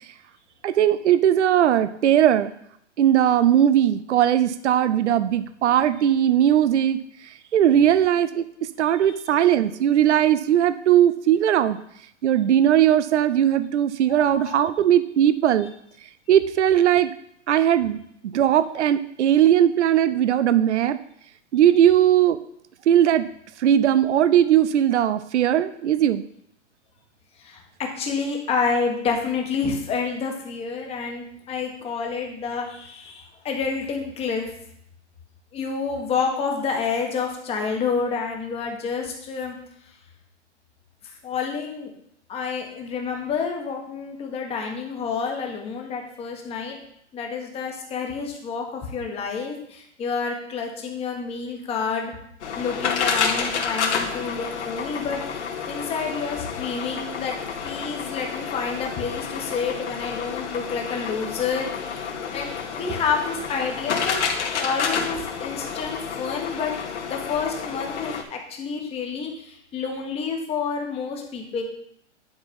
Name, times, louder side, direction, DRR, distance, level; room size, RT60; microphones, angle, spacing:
voice 1, 0.6-2.5 3.0-7.0 7.5-8.4 8.8-11.8 12.2-15.7 16.3-17.1 17.5-18.0 18.3-21.0 21.5-22.4 22.9-23.3 23.6-26.2, right 10 dB, 70° right, 14 dB, 0.6 m, -19 dB
voice 2, 14.1-14.6 27.4-34.5 35.5-39.6 41.0-41.9 42.3-46.8 47.1-52.1 52.6-55.2 55.6-57.4 57.6-61.7 62.3-64.2 64.5-66.8 67.0-71.6, left 5 dB, 15° left, 2 dB, 1.4 m, -29 dB
sound 1, 52.4-68.2, left 6 dB, 65° left, 2.1 m, -29 dB
10.5 x 4.1 x 5.3 m, 0.72 s
hypercardioid pair, 140°, 37 cm